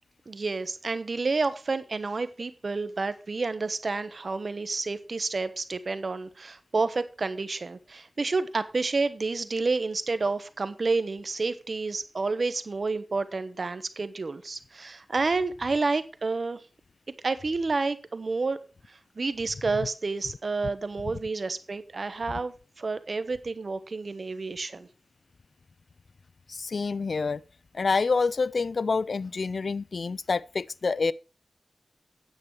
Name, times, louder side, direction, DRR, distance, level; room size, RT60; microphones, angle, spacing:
voice 1, 0.3-16.6 17.2-18.6 18.9-24.9, right 3 dB, 65° right, 1.1 m, -30 dB
voice 2, 26.5-27.4 27.7-31.1, left 4 dB, 80° left, 0.4 m, -27 dB
9.6 x 8.2 x 4.7 m
wide cardioid pair, 55°, 0 cm